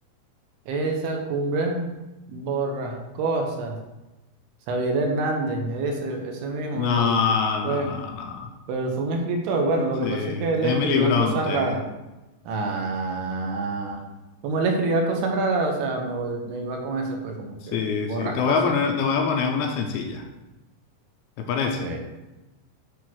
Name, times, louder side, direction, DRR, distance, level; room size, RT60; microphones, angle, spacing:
voice 1, 0.7-1.9 2.3-3.8 4.7-7.2 7.6-7.9 8.7-11.8 12.5-14.0 14.4-18.7 21.8-22.0, right 3 dB, 75° right, 2 dB, 2.8 m, -26 dB
voice 2, 6.7-8.5 10.0-11.7 17.6-20.3 21.4-21.9, left 6 dB, 80° left, 3 dB, 2.5 m, -25 dB
8.4 x 3.6 x 6.2 m, 1.0 s
omnidirectional pair, 4.9 m